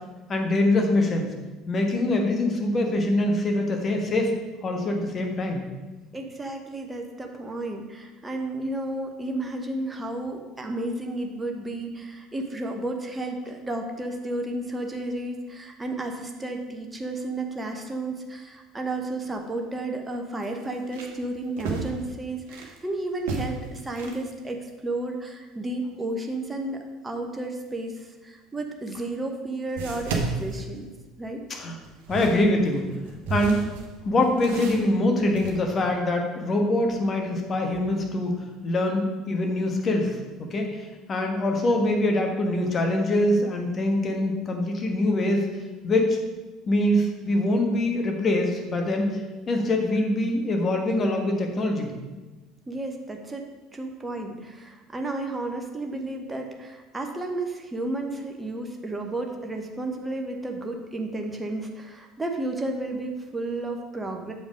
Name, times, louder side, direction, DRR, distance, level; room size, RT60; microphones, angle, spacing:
voice 1, 0.3-1.3 1.7-4.4 4.6-5.6 31.5-31.8 32.1-32.9 33.3-33.6 34.0-38.3 38.6-45.5 45.8-46.2 46.7-49.2 49.5-51.9, left 1 dB, 30° left, 3 dB, 1.4 m, -24 dB
voice 2, 6.1-30.9 31.2-31.4 52.7-53.5 53.7-64.3, right 2 dB, 15° right, 3 dB, 1.0 m, -32 dB
sound 1, 19.2-19.4 19.8-19.9 20.4-22.8 23.2-24.3 28.5-28.6 29.8-31.3 31.8-35.5, right 4 dB, 65° right, 1.0 m, -34 dB
7.3 x 5.2 x 5.1 m, 1.2 s
figure-of-eight pair, 65°, 0 cm